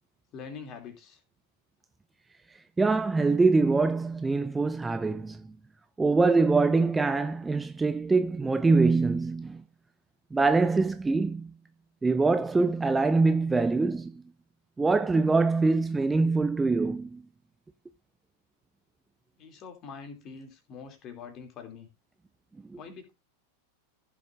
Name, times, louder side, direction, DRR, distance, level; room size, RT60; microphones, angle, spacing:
voice 1, 0.3-1.2 19.4-21.9 22.8-23.1, left 5 dB, 35° left, 2.7 m, -44 dB
voice 2, 2.8-5.6 6.0-9.6 10.3-11.5 12.0-14.2 14.8-17.2 22.7-22.8, right 3 dB, 10° right, 0.5 m, -24 dB
15.5 x 6.8 x 2.5 m
figure-of-eight pair, 90°, 0 cm